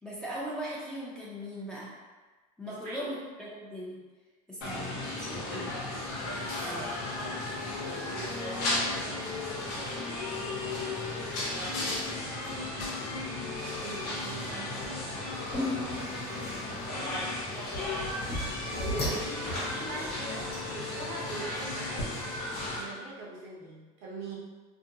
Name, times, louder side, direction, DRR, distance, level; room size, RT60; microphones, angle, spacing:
voice 1, 0.0-1.9 2.6-4.0 4.5-5.7 6.6-6.9, equal, 5° left, -7 dB, 0.5 m, -39 dB
voice 2, 2.7-3.1 5.5-5.7 6.6-6.8 7.8-11.1 12.4-12.8 13.8-16.4 18.7-22.3 22.7-24.4, right 3 dB, 60° right, -4 dB, 0.8 m, -43 dB
sound 1, 4.6-22.8, left 2 dB, 80° left, 0.9 m, -35 dB
sound 2, 15.5-20.5, left 1 dB, 35° left, 1.2 m, -36 dB
2.5 x 2.1 x 2.7 m, 1.3 s
supercardioid pair, 125°, 19 cm